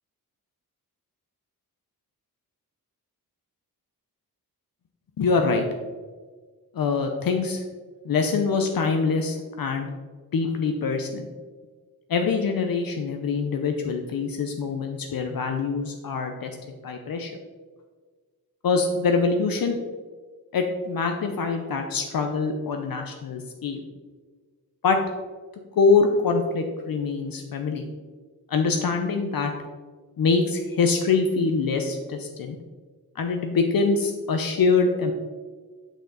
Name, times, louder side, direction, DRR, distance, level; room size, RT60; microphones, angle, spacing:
voice 1, 5.2-5.6 6.8-7.6 8.1-9.9 10.3-11.3 12.1-16.5 16.8-17.3 18.6-19.8 20.5-23.8 24.8-25.0 25.8-27.8 28.5-29.5 30.2-32.6 33.2-35.1, left 4 dB, 65° left, 4 dB, 0.7 m, -24 dB
8.0 x 6.4 x 3.9 m, 1.5 s
wide cardioid pair, 150°, 37 cm